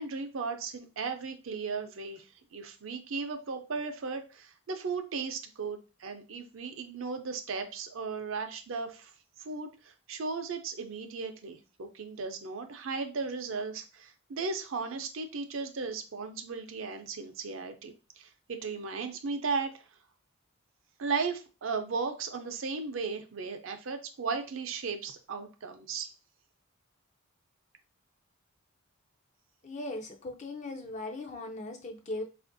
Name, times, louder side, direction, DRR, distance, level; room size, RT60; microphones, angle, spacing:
voice 1, 0.0-9.1 9.4-19.8 21.0-26.1, right 4 dB, 70° right, 6 dB, 0.5 m, -36 dB
voice 2, 29.6-32.2, left 2 dB, 35° left, 3 dB, 0.4 m, -38 dB
4.2 x 2.4 x 2.6 m, 0.32 s
head